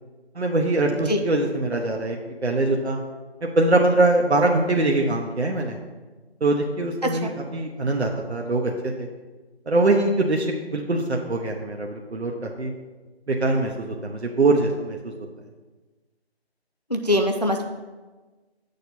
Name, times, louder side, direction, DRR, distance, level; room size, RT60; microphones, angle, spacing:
voice 1, 0.3-3.0 3.4-5.8 6.4-8.7 9.0-9.1 9.7-12.7 13.3-15.0, right 2 dB, 75° right, 1 dB, 1.0 m, -23 dB
voice 2, 16.9-17.7, left 1 dB, 40° left, 5 dB, 0.4 m, -23 dB
8.4 x 6.6 x 4.3 m, 1.3 s
figure-of-eight pair, 170°, 33 cm